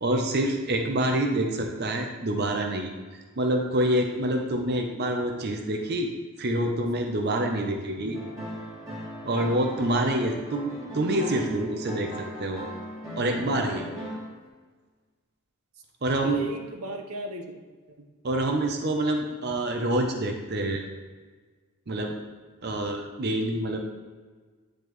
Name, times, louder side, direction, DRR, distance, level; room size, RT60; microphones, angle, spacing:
voice 1, 0.0-6.1 6.4-8.2 9.2-12.7 13.2-13.8 16.0-16.5 18.2-20.8 21.9-22.1 22.6-23.8, right 1 dB, 45° right, 3 dB, 0.7 m, -27 dB
voice 2, 8.0-8.3 16.2-17.6 18.0-18.1, right 2 dB, 85° right, 4 dB, 0.9 m, -36 dB
sound 1, 8.1-14.4, equal, 15° right, 2.1 m, -38 dB
9.8 x 5.0 x 3.1 m, 1.4 s
head